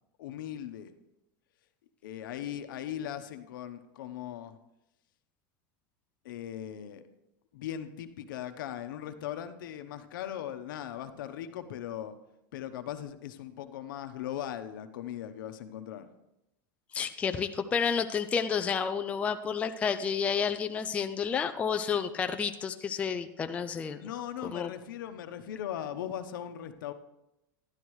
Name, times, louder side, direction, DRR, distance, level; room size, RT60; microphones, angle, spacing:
voice 1, 0.2-0.9 2.0-4.6 6.2-7.0 7.5-12.2 12.5-16.1 24.0-26.9, left 10 dB, 80° left, 9 dB, 0.9 m, -39 dB
voice 2, 16.9-24.0 24.4-24.7, left 6 dB, 10° left, 8 dB, 0.3 m, -30 dB
11.5 x 11.5 x 3.2 m, 0.89 s
supercardioid pair, 155°, 11 cm